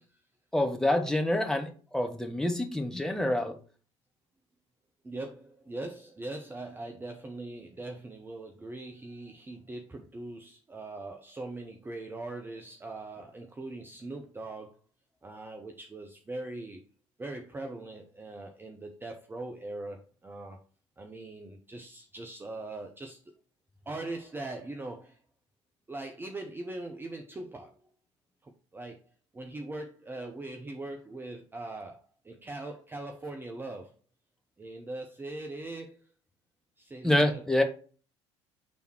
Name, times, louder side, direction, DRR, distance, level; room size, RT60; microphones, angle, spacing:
voice 1, 0.5-3.5 37.0-37.6, left 1 dB, 5° left, 4 dB, 1.0 m, -27 dB
voice 2, 5.0-14.8 15.2-16.8 17.2-20.6 21.0-23.3 23.9-25.2 25.9-27.7 28.4-29.0 29.3-32.0 32.2-34.0 34.6-36.1 36.8-37.6, right 2 dB, 15° right, 3 dB, 0.6 m, -41 dB
6.2 x 3.4 x 4.4 m, 0.40 s
figure-of-eight pair, 60°, 15 cm